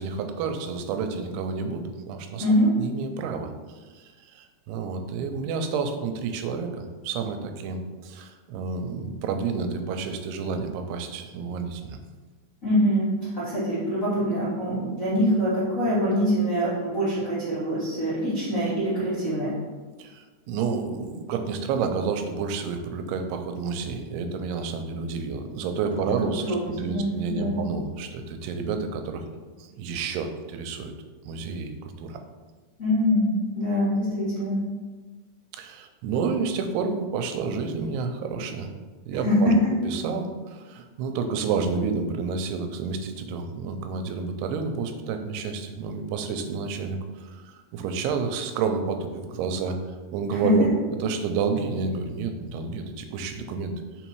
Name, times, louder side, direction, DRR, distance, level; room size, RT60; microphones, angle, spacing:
voice 1, 0.0-2.4 2.8-3.5 3.9-12.0 20.0-29.2 29.6-30.9 31.3-32.2 35.5-38.7 39.1-39.5 39.9-49.8 50.1-50.7 51.0-53.7, right 5 dB, 85° right, 6 dB, 2.6 m, -30 dB
voice 2, 2.4-2.7 12.6-19.5 25.9-26.0 26.5-26.6 26.9-27.6 32.8-34.6 39.1-39.7 50.3-50.7, equal, 90° left, -12 dB, 0.7 m, -24 dB
5.7 x 4.0 x 4.6 m, 1.3 s
omnidirectional pair, 4.6 m